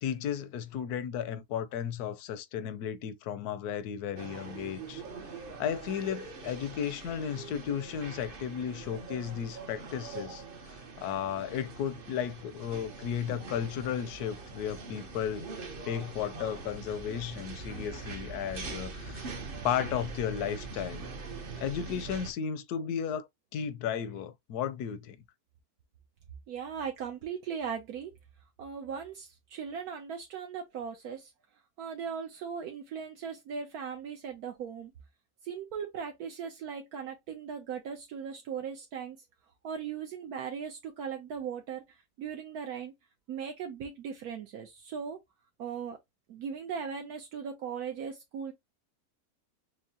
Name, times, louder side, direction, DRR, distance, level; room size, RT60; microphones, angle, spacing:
voice 1, 0.0-5.0 5.6-10.4 11.0-15.5 15.9-19.3 19.6-21.0 21.6-25.2, left 8 dB, 80° left, 1.1 m, -34 dB
sound 1, 4.2-22.3, right 4 dB, 45° right, 0.8 m, -43 dB
voice 2, 26.5-28.1 28.6-31.3 31.8-34.9 35.4-39.2 39.6-42.9 43.3-45.2 45.6-46.0 46.3-48.5, right 7 dB, 75° right, 1.2 m, -38 dB
6.2 x 2.1 x 2.8 m
omnidirectional pair, 1.6 m